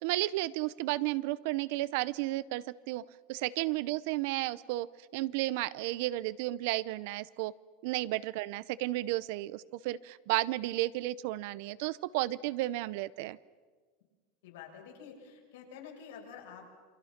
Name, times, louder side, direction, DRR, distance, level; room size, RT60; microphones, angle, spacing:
voice 1, 0.0-3.0 3.3-4.9 5.1-7.5 7.8-13.4, right 17 dB, 60° right, 19 dB, 0.7 m, -33 dB
voice 2, 14.4-16.7, left 7 dB, 90° left, 0 dB, 6.8 m, -49 dB
29.0 x 24.5 x 5.9 m, 1.5 s
supercardioid pair, 160°, 0 cm